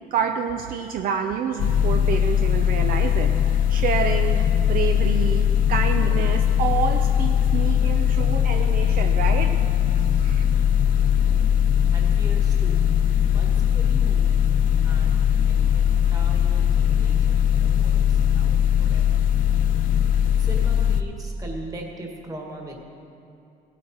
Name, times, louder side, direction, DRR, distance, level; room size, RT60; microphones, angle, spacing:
voice 1, 0.1-9.6 10.0-10.4, right 7 dB, 60° right, 5 dB, 0.6 m, -28 dB
sound 1, 1.6-21.0, left 9 dB, 55° left, 0.5 m, -20 dB
voice 2, 11.9-12.8 13.3-14.4 14.8-19.2 20.4-22.7, right 1 dB, 20° right, 1 dB, 1.8 m, -40 dB
17.5 x 8.2 x 4.4 m, 2.7 s
cardioid pair, 135°, 17 cm